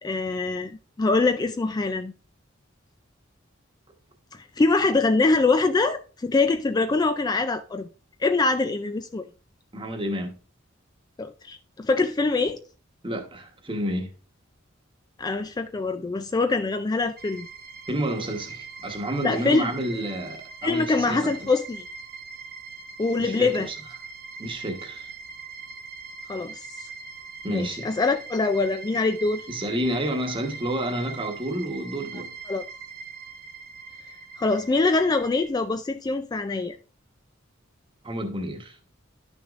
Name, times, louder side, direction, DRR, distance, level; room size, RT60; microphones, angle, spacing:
voice 1, 0.0-2.1 4.3-7.9 8.2-9.2 11.2-12.6 15.2-17.5 19.2-19.7 20.6-21.9 23.0-23.7 26.3-26.9 27.5-29.5 32.5-32.6 34.4-36.8, left 3 dB, 20° left, 0.3 m, -24 dB
voice 2, 9.7-10.3 13.0-14.1 17.9-21.5 23.2-23.7 24.4-25.1 27.4-27.9 29.5-32.3 38.0-38.9, right 1 dB, 25° right, 1.2 m, -30 dB
sound 1, 17.2-35.5, right 4 dB, 50° right, 0.7 m, -42 dB
11.0 x 6.2 x 2.4 m
head